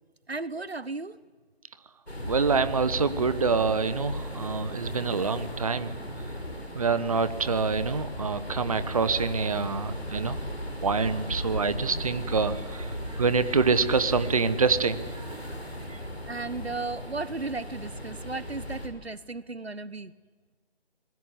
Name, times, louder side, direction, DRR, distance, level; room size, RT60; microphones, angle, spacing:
voice 1, 0.3-1.2 16.3-20.1, right 3 dB, 80° right, 17 dB, 1.2 m, -35 dB
sound 1, 2.1-18.9, equal, 85° left, 6.1 m, -36 dB
voice 2, 2.3-5.9 6.7-10.4 10.8-15.3 15.9-16.0, right 5 dB, 35° right, 13 dB, 1.1 m, -26 dB
27.0 x 20.5 x 8.2 m, 1.4 s
figure-of-eight pair, 155°, 31 cm